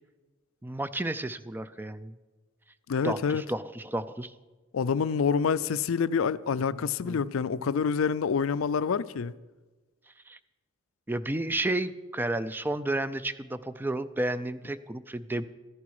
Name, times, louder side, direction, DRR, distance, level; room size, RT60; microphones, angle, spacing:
voice 1, 0.6-2.1 3.0-4.3 6.7-7.2 7.6-7.7 10.3-10.4 11.1-15.5, right 1 dB, 10° right, 0.4 m, -32 dB
voice 2, 2.9-3.4 4.7-9.3, left 6 dB, 85° left, 0.4 m, -27 dB
14.0 x 11.0 x 4.8 m
head